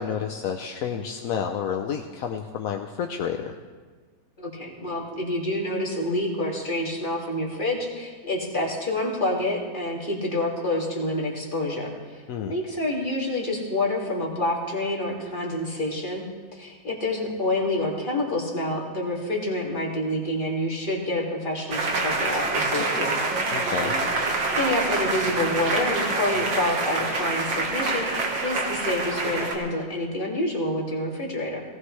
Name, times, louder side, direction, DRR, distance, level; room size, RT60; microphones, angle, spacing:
voice 1, 0.0-3.5 12.3-12.5 23.5-23.9, left 7 dB, 65° left, 4 dB, 0.9 m, -30 dB
voice 2, 4.4-16.2 16.5-23.1 23.8-24.0 24.6-31.6, left 1 dB, 25° left, -2 dB, 2.5 m, -28 dB
sound 1, 21.7-29.5, right 3 dB, 85° right, 2.2 m, -26 dB
18.0 x 16.5 x 3.2 m, 1.4 s
omnidirectional pair, 2.0 m